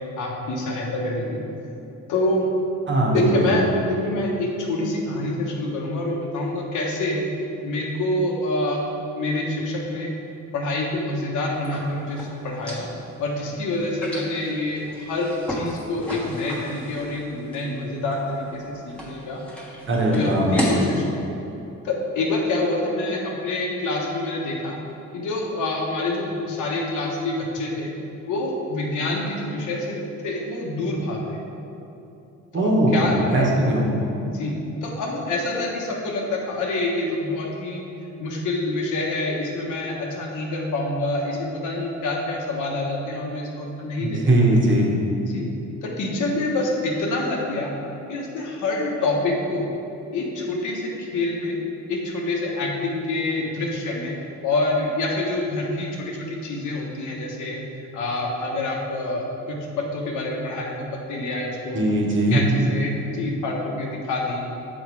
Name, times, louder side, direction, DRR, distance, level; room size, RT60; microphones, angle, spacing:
voice 1, 0.2-1.4 2.1-2.5 3.1-7.2 7.6-8.8 9.2-10.1 10.5-12.9 13.2-19.4 20.1-21.3 21.8-24.8 25.1-27.9 28.3-30.0 30.2-31.4 32.6-33.5 34.2-37.8 38.2-44.2 45.2-45.5 45.8-47.7 48.1-49.7 50.1-51.6 51.9-54.1 54.4-57.6 57.9-61.8 62.3-64.5, left 2 dB, 85° left, -1 dB, 1.1 m, -26 dB
voice 2, 2.9-3.6 19.9-20.7 32.5-33.9 44.0-44.9 61.7-62.4, right 1 dB, 40° right, -2 dB, 1.3 m, -20 dB
sound 1, 11.5-20.9, left 1 dB, 5° left, 1.3 m, -34 dB
6.2 x 4.4 x 4.7 m, 2.9 s
cardioid pair, 90°, 30 cm